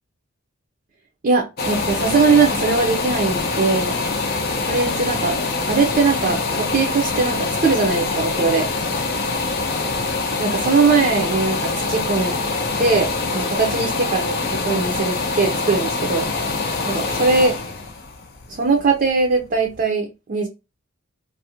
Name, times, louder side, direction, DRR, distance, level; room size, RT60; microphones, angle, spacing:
voice 1, 1.2-3.9 4.6-5.4 5.7-8.7 10.4-12.3 12.8-16.3 16.9-17.5 18.5-20.5, right 4 dB, 40° right, 1 dB, 0.5 m, -20 dB
sound 1, 1.6-19.3 19.7-19.8, left 3 dB, 50° left, 0.5 m, -24 dB
2.5 x 2.1 x 2.7 m, 0.26 s
head